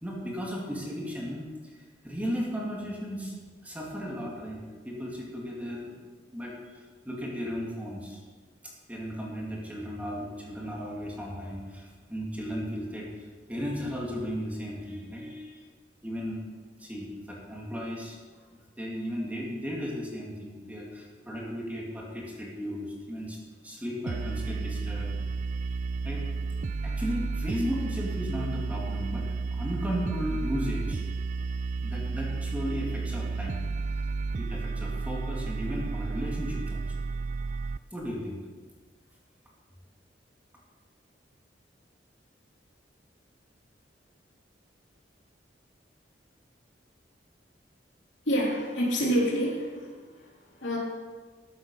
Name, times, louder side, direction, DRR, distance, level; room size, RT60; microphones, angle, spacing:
voice 1, 0.0-3.3 3.6-8.2 8.9-15.6 16.0-16.4 16.8-18.2 18.8-23.4 23.6-25.1 26.0-26.2 26.8-29.3 29.5-31.0 31.8-33.6 34.4-36.9 37.9-38.4, equal, 10° right, -3 dB, 2.4 m, -35 dB
sound 1, 24.1-37.8, right 4 dB, 40° right, 0.3 m, -32 dB
voice 2, 48.3-50.8, equal, 80° left, -4 dB, 3.4 m, -28 dB
14.0 x 8.0 x 5.5 m, 1.5 s
head